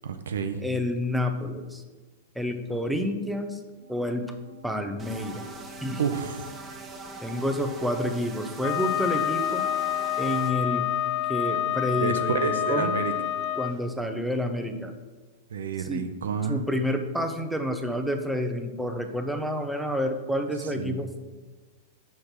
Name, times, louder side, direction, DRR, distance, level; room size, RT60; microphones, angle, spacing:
voice 1, 0.0-0.6 6.0-6.4 11.9-13.1 15.5-16.6 20.6-21.0, right 5 dB, 70° right, 8 dB, 0.6 m, -29 dB
voice 2, 0.6-1.8 2.4-3.6 3.9-4.3 4.6-5.4 5.8-6.0 7.2-9.6 10.2-10.9 11.3-13.0 13.6-14.9 15.8-16.1 16.5-21.2, left 1 dB, ahead, 5 dB, 0.8 m, -29 dB
Organ, 3.8-15.0, left 1 dB, 70° left, 2.2 m, -50 dB
sound 1, 5.0-10.5, right 3 dB, 20° right, 1.1 m, -42 dB
Wind instrument woodwind instrument, 8.6-13.8, left 12 dB, 40° left, 0.3 m, -28 dB
6.4 x 5.8 x 4.4 m, 1.3 s
figure-of-eight pair, 100°, 0 cm